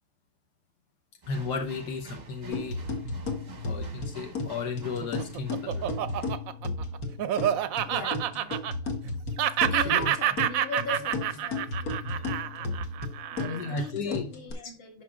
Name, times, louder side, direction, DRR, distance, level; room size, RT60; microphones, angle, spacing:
sound 1, 1.2-6.4, right 5 dB, 35° right, 0.8 m, -48 dB
voice 1, 1.3-2.8 3.6-5.9 9.8-10.1 13.4-14.3 14.6-14.7, left 4 dB, 80° left, 3 dB, 1.5 m, -34 dB
sound 2, 2.5-14.5, left 3 dB, 60° left, 1.6 m, -34 dB
Laughter, 4.8-9.1 9.4-13.8, right 11 dB, 70° right, 0.9 m, -28 dB
voice 2, 7.9-8.6 9.7-12.7 13.3-15.0, left 2 dB, 35° left, 1 dB, 1.9 m, -40 dB
11.0 x 5.9 x 2.4 m, 0.35 s
omnidirectional pair, 1.7 m